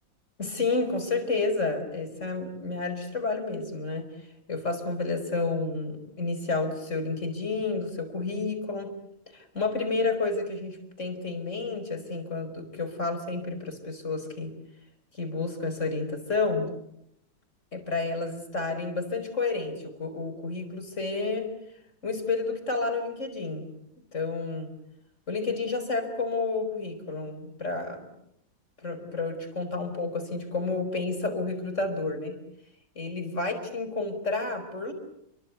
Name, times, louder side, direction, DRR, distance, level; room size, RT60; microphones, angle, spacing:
voice 1, 0.4-4.1 4.5-9.0 9.3-14.5 15.1-16.7 17.7-21.5 22.0-23.7 24.1-24.7 25.3-28.1 28.8-32.4 33.0-34.9, left 3 dB, 35° left, 7 dB, 5.5 m, -30 dB
29.5 x 23.5 x 8.3 m, 0.77 s
omnidirectional pair, 2.1 m